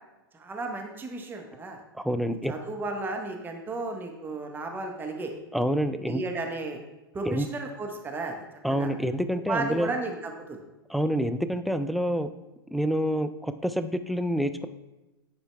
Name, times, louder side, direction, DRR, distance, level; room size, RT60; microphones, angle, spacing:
voice 1, 0.3-1.8 2.5-5.3 6.1-6.8 7.1-8.9 9.5-10.6, right 3 dB, 15° right, 3 dB, 1.0 m, -34 dB
voice 2, 1.9-2.5 5.5-6.2 7.3-7.5 8.6-9.9 10.9-12.3 12.7-14.7, equal, ahead, 9 dB, 0.3 m, -27 dB
9.7 x 4.5 x 3.3 m, 1.1 s
hypercardioid pair, 110°, 13 cm